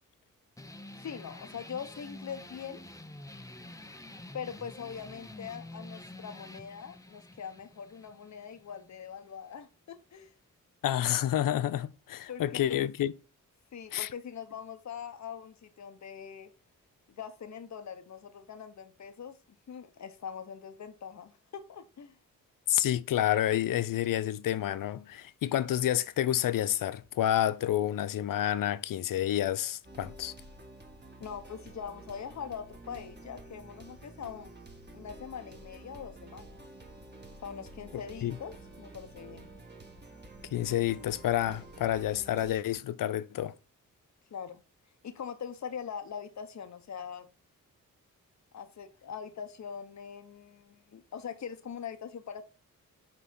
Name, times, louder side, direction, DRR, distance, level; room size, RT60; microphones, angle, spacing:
sound 1, 0.6-9.6, left 1 dB, 10° left, 0.8 m, -48 dB
voice 1, 1.0-2.8 4.3-10.3 12.3-12.8 13.7-16.5 17.1-19.3 19.7-22.2 31.2-34.5 34.9-36.5 37.4-39.5 44.3-44.6 45.0-47.3 48.5-52.5, left 7 dB, 55° left, 1.0 m, -42 dB
voice 2, 10.8-13.1 13.9-14.1 22.7-30.3 38.2-38.4 40.5-43.5, left 12 dB, 75° left, 0.6 m, -29 dB
sound 2, 29.8-42.6, right 2 dB, 30° right, 2.0 m, -50 dB
6.0 x 4.1 x 5.6 m
cardioid pair, 70°, 33 cm